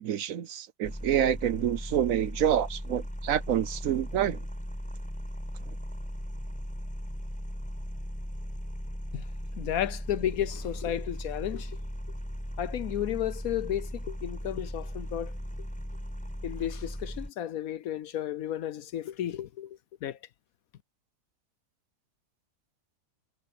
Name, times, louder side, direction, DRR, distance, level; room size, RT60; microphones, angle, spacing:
voice 1, 0.0-4.4, right 10 dB, 65° right, 1.0 m, -27 dB
sound 1, 0.8-17.3, equal, 5° left, 5.8 m, -37 dB
voice 2, 9.6-11.8 12.6-15.3 16.4-20.2, left 11 dB, 70° left, 1.0 m, -33 dB
omnidirectional pair, 1.7 m